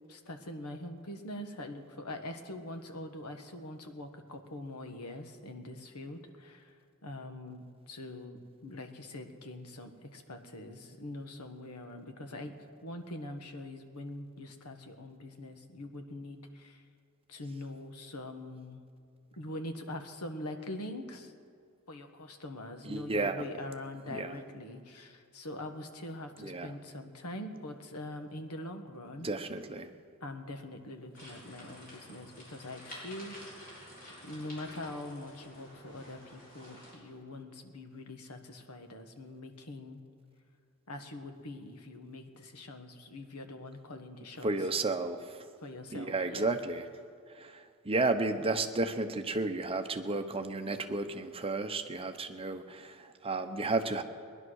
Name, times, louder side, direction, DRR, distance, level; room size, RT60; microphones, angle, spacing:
voice 1, 0.1-6.8 7.0-12.5 12.8-16.8 17.3-18.8 19.4-21.3 21.9-29.3 30.2-33.8 34.2-40.0 40.9-44.7 45.6-46.6, left 1 dB, 85° left, 6 dB, 1.4 m, -43 dB
voice 2, 22.8-23.4 24.1-24.4 26.4-26.7 29.2-29.9 44.4-45.4 45.9-46.9 47.3-54.0, right 3 dB, 25° right, 7 dB, 0.8 m, -32 dB
sound 1, 31.1-36.9, left 1 dB, 40° left, 4.8 m, -50 dB
20.0 x 10.5 x 6.4 m, 2.3 s
head